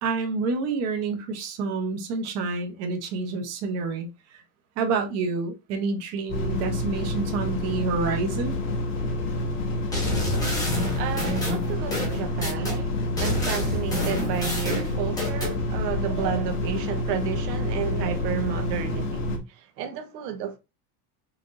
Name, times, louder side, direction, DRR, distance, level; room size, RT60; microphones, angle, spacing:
voice 1, 0.0-4.1 4.8-8.6, right 4 dB, 30° right, 0.8 m, -28 dB
sound 1, 6.3-19.4, left 2 dB, 25° left, 0.7 m, -28 dB
sound 2, 9.9-12.8 13.2-15.5, left 1 dB, 5° left, 1.0 m, -29 dB
voice 2, 10.9-20.6, right 9 dB, 85° right, 1.1 m, -32 dB
5.8 x 2.8 x 2.6 m
supercardioid pair, 175°, 48 cm